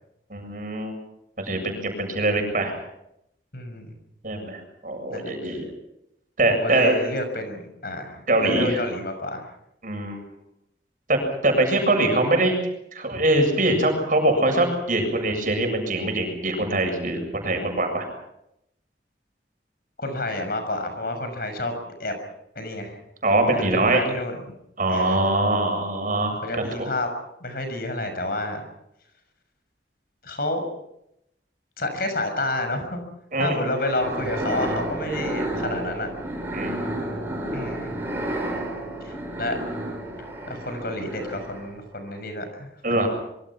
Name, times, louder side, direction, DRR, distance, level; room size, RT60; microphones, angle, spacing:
voice 1, 0.3-0.9 1.4-2.7 4.2-5.7 6.4-7.0 8.3-8.8 9.8-10.2 11.1-12.6 12.9-18.0 23.2-24.0 24.8-26.4 26.8-26.9 33.3-33.6 36.5-36.8 42.8-43.1, right 2 dB, 50° right, 4 dB, 7.5 m, -23 dB
voice 2, 3.5-3.9 5.1-5.6 6.5-9.5 13.1-13.2 20.0-22.1 22.5-23.0 23.5-24.4 24.9-25.2 26.4-27.1 27.4-28.6 30.2-30.7 31.8-33.0 33.4-36.1 37.5-38.1 39.0-39.6 40.5-43.1, left 2 dB, 60° left, 7 dB, 6.3 m, -30 dB
sound 1, 33.8-41.8, right 1 dB, 15° right, 6.9 m, -31 dB
26.0 x 24.0 x 6.1 m, 0.81 s
head